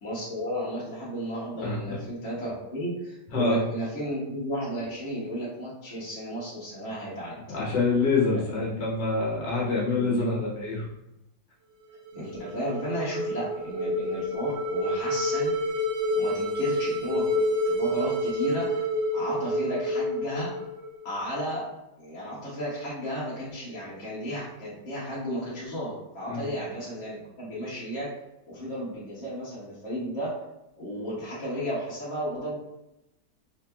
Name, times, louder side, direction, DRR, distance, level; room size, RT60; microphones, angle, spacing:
voice 1, 0.0-7.3 8.3-8.7 9.9-10.5 12.1-15.5 16.1-18.8 19.1-20.5 21.0-21.6 22.0-28.1 28.5-30.3 30.8-32.6, equal, 45° left, -8 dB, 1.5 m, -33 dB
voice 2, 1.6-2.0 3.3-3.6 7.5-10.8 26.3-26.5, left 3 dB, 75° left, -5 dB, 1.7 m, -26 dB
sound 1, 11.9-21.1, equal, 65° right, 0.9 m, -28 dB
4.3 x 3.9 x 2.2 m, 0.89 s
omnidirectional pair, 1.9 m